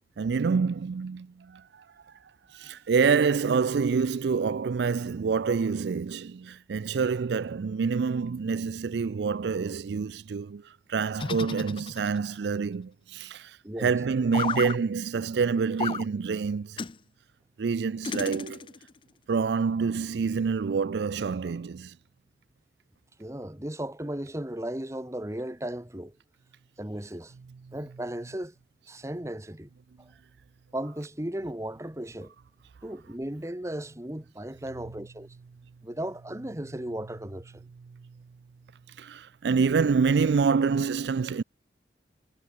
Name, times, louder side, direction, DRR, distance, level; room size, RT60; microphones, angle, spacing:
voice 1, 0.2-2.2 2.5-16.8 17.6-18.7 19.3-22.0 39.0-41.4, right 5 dB, 75° right, 0.4 m, -27 dB
sound 1, 11.2-12.4 14.3-14.8 15.8-16.1 16.8-17.0 18.0-18.9, left 5 dB, 30° left, 0.4 m, -33 dB
voice 2, 23.2-26.1 26.8-27.3 27.7-28.5 28.9-29.7 30.0-30.1 30.7-32.3 32.8-35.3 35.8-37.6, right 1 dB, 15° right, 1.3 m, -36 dB
head